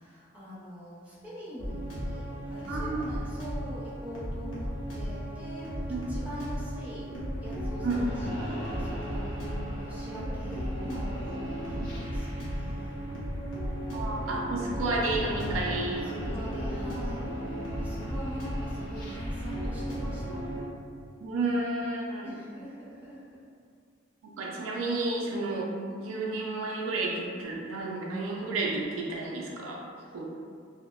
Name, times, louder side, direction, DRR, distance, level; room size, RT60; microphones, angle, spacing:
voice 1, 0.0-4.7 4.9-5.7 6.1-7.1 7.4-13.0 15.8-17.4 17.7-20.4 22.2-23.4 30.0-30.2, equal, 10° right, -10 dB, 0.6 m, -44 dB
sound 1, 1.6-20.6, equal, 75° left, 0.7 m, -34 dB
voice 2, 2.7-3.2 5.9-6.0 7.8-8.0 11.8-11.9 13.9-16.4 21.2-22.3 24.2-29.8 30.1-30.3, right 2 dB, 85° right, -2 dB, 0.4 m, -31 dB
2.7 x 2.0 x 2.2 m, 2.2 s
head